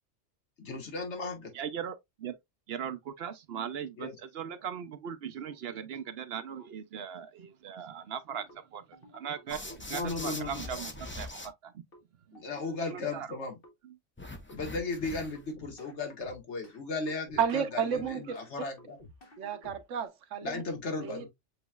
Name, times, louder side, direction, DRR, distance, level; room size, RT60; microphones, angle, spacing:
voice 1, 0.6-1.5 4.0-4.1 9.9-10.8 12.3-13.6 14.5-19.0 20.4-21.3, left 3 dB, 70° left, 1.6 m, -36 dB
voice 2, 1.5-2.4 2.7-11.8 12.3-12.4 12.9-13.3 13.8-14.0, right 8 dB, 60° right, 0.8 m, -39 dB
Bongo Drum Beat, 8.5-8.6 8.9-9.4 10.2-10.3 10.6-11.1 11.9-12.0 12.3-12.9 13.4-13.7 14.5-15.1 15.3-16.8 17.1-18.5 18.8-20.1, left 1 dB, 50° left, 1.4 m, -54 dB
sound 1, 9.5-11.5 14.2-15.5, left 2 dB, 15° left, 0.6 m, -42 dB
voice 3, 17.4-18.3 19.4-20.6 21.0-21.3, right 7 dB, 85° right, 1.1 m, -31 dB
7.7 x 3.0 x 2.2 m
omnidirectional pair, 1.2 m